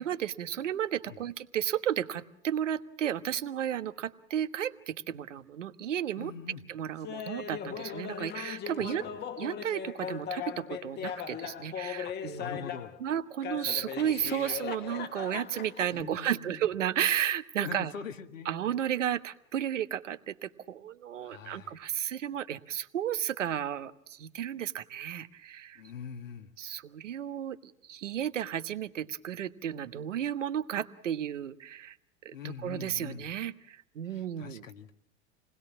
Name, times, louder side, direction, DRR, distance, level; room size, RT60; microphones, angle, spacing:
voice 1, 0.0-6.3 6.7-9.0 9.4-12.7 13.0-17.9 18.4-25.8 26.6-31.9 32.2-34.7, right 10 dB, 65° right, 11 dB, 1.4 m, -33 dB
voice 2, 6.2-6.6 8.8-8.9 12.0-13.0 15.9-16.6 17.6-18.6 21.2-21.8 25.8-26.5 32.3-33.3 34.0-34.9, left 6 dB, 70° left, 5 dB, 1.8 m, -43 dB
Laughter, 7.0-13.0 13.4-16.0, left 8 dB, 25° left, 1.5 m, -38 dB
28.5 x 20.0 x 7.4 m, 0.80 s
figure-of-eight pair, 90°, 40 cm